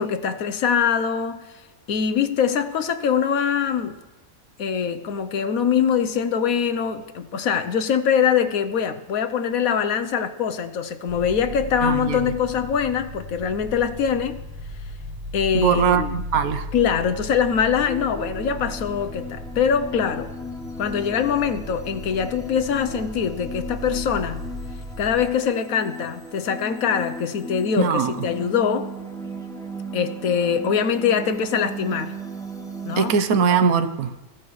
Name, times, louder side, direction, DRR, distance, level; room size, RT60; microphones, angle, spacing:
voice 1, 0.0-1.6 1.9-4.0 4.6-14.4 15.3-16.1 16.7-20.3 20.8-24.5 25.0-28.9 29.9-32.2 32.8-33.1, left 7 dB, 80° left, 1.2 m, -23 dB
sound 1, 11.1-25.2, left 1 dB, 20° right, 4.5 m, -36 dB
voice 2, 11.8-12.3 15.5-16.7 27.8-28.1 33.0-34.1, right 6 dB, 85° right, 1.3 m, -21 dB
sound 2, 17.9-33.1, right 1 dB, 5° left, 0.7 m, -36 dB
21.0 x 15.5 x 3.2 m
omnidirectional pair, 1.5 m